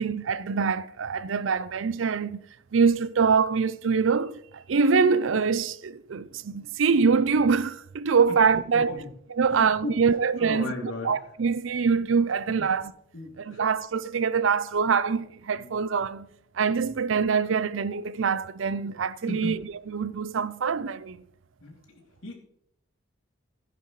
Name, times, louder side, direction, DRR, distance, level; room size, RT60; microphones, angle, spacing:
voice 1, 0.0-2.4 2.7-9.0 9.3-12.9 13.4-16.3 16.6-19.6 19.9-21.2, right 5 dB, 80° right, 0.5 m, -24 dB
voice 2, 8.3-9.1 9.5-10.0 10.4-11.1 12.6-12.7 13.1-13.6 15.5-15.8 16.8-16.9 19.3-19.5 21.6-22.4, left 2 dB, 85° left, 2.7 m, -37 dB
15.5 x 10.0 x 3.2 m
head